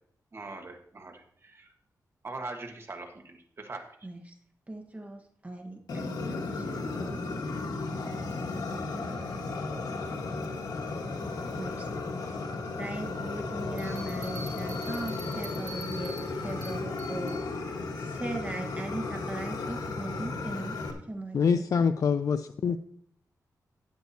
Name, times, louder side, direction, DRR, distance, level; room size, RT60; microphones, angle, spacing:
voice 1, 0.3-1.7 2.2-3.8, right 3 dB, 40° right, 1.5 m, -41 dB
voice 2, 4.0-4.3 4.7-7.2 8.0-9.2 11.6-11.9 12.8-17.4 17.9-21.6, right 2 dB, 20° right, 1.3 m, -39 dB
Fire, 5.9-20.9, left 3 dB, 85° left, 1.4 m, -34 dB
sound 1, 13.8-17.4, right 1 dB, 80° right, 3.6 m, -45 dB
voice 3, 21.3-22.8, left 6 dB, 60° left, 0.4 m, -25 dB
12.5 x 9.3 x 2.8 m
wide cardioid pair, 110°, 7 cm